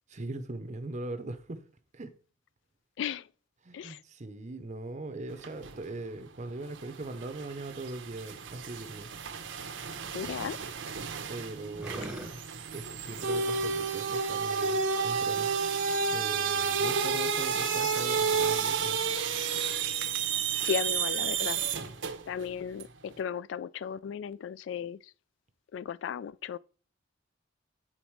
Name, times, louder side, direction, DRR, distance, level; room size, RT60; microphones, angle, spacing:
voice 1, 0.1-1.6 1.9-2.1 3.6-9.1 11.3-12.4 12.7-15.5 16.1-19.0, right 2 dB, 40° right, 0.7 m, -40 dB
voice 2, 3.0-3.3 3.7-4.0 10.1-10.6 20.6-21.6 22.3-25.1 25.7-26.6, left 7 dB, 65° left, 0.3 m, -35 dB
sound 1, 5.3-5.8 6.2-22.4 22.8-22.9, right 5 dB, 75° right, 0.8 m, -31 dB
sound 2, 9.8-15.3, right 1 dB, 5° right, 0.8 m, -48 dB
8.8 x 4.0 x 4.6 m
head